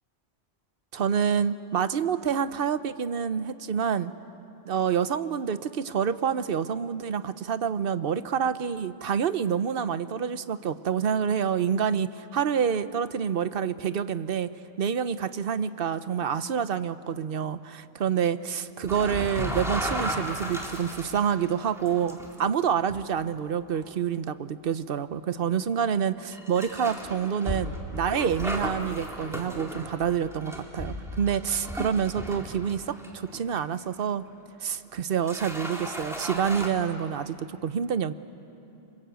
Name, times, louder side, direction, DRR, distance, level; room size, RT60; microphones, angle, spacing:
voice 1, 0.9-4.1 4.7-14.5 14.8-34.2 34.6-38.1, right 7 dB, 55° right, 13 dB, 1.0 m, -27 dB
sound 1, 18.9-22.4 22.9-23.1 23.7-23.9 24.7-24.8 26.3-33.6 34.0-34.1 34.9-35.0 35.2-36.7, equal, ahead, 3.0 m, -35 dB
28.5 x 25.5 x 8.2 m, 2.9 s
omnidirectional pair, 1.2 m